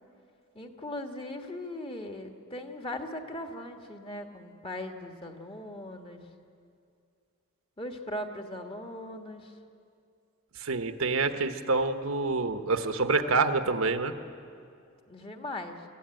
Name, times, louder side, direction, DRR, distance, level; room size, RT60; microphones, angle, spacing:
voice 1, 0.5-6.2 7.8-9.5 15.1-15.8, left 1 dB, 25° left, 4 dB, 1.6 m, -39 dB
voice 2, 10.6-14.1, right 3 dB, 70° right, 8 dB, 1.1 m, -27 dB
24.5 x 14.5 x 9.1 m, 2.4 s
head